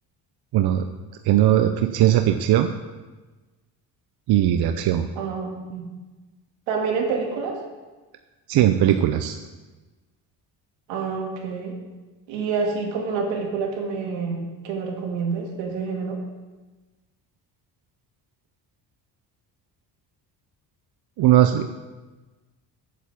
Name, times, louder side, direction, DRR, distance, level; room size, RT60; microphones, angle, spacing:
voice 1, 0.5-0.9 1.2-2.7 4.3-5.1 8.5-9.4 21.2-21.8, right 12 dB, 60° right, 7 dB, 0.7 m, -19 dB
voice 2, 5.2-5.8 6.7-7.6 10.9-11.8 12.3-16.2, right 5 dB, 90° right, 0 dB, 2.5 m, -27 dB
8.2 x 7.6 x 7.2 m, 1.2 s
cardioid pair, 110°, 43 cm